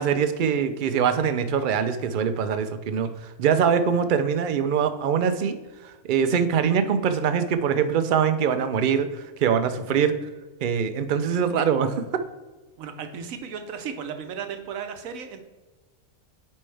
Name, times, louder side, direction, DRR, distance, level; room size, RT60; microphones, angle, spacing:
voice 1, 0.0-3.1 3.4-5.6 5.8-10.1 10.6-12.0, right 7 dB, 60° right, 10 dB, 0.5 m, -23 dB
voice 2, 12.8-15.4, right 7 dB, 85° right, 7 dB, 1.2 m, -35 dB
8.8 x 5.3 x 3.3 m, 1.2 s
omnidirectional pair, 1.4 m